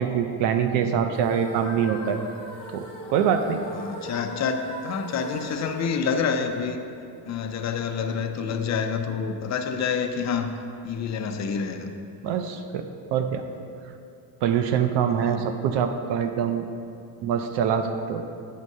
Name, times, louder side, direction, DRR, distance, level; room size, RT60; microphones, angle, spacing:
voice 1, 0.0-2.2 2.7-3.6 12.2-13.4 14.4-16.6 17.2-18.2, right 8 dB, 80° right, 7 dB, 0.6 m, -24 dB
sound 1, 1.1-7.2, left 1 dB, 10° left, 1.6 m, -40 dB
voice 2, 3.7-6.8 7.3-10.5 10.8-11.9 15.2-15.4, left 6 dB, 40° left, 6 dB, 0.5 m, -28 dB
9.3 x 3.6 x 5.3 m, 2.6 s
cardioid pair, 140°, 42 cm